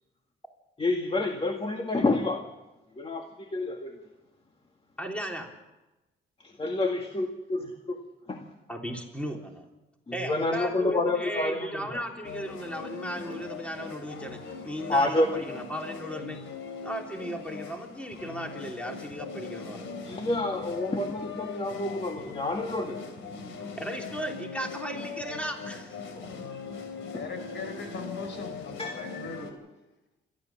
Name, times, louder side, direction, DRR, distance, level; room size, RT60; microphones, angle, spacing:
voice 1, 0.8-2.4 3.0-4.0 6.6-8.0 8.3-8.5 10.1-12.0 14.9-15.4 20.1-23.0 26.2-26.3 27.1-27.2 28.8-29.0, left 2 dB, 30° left, 3 dB, 2.0 m, -28 dB
voice 2, 5.0-5.5 8.7-9.6 10.1-16.4 16.8-19.9 23.6-26.0, equal, 5° left, 1 dB, 3.5 m, -36 dB
sound 1, 12.2-29.5, left 5 dB, 80° left, 3.1 m, -40 dB
voice 3, 27.1-29.5, left 4 dB, 65° left, 7 dB, 5.1 m, -40 dB
28.0 x 12.5 x 7.4 m, 1.0 s
cardioid pair, 90°, 20 cm